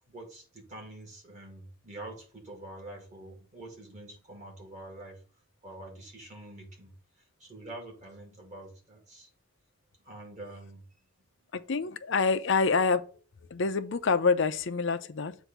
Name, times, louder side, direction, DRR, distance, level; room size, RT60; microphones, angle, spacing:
voice 1, 0.1-5.2 5.6-6.9 7.4-9.3 10.1-10.8, right 1 dB, 35° right, 2.0 m, -46 dB
voice 2, 11.5-13.0 13.5-15.4, left 4 dB, 60° left, 0.5 m, -26 dB
7.9 x 2.7 x 6.0 m
head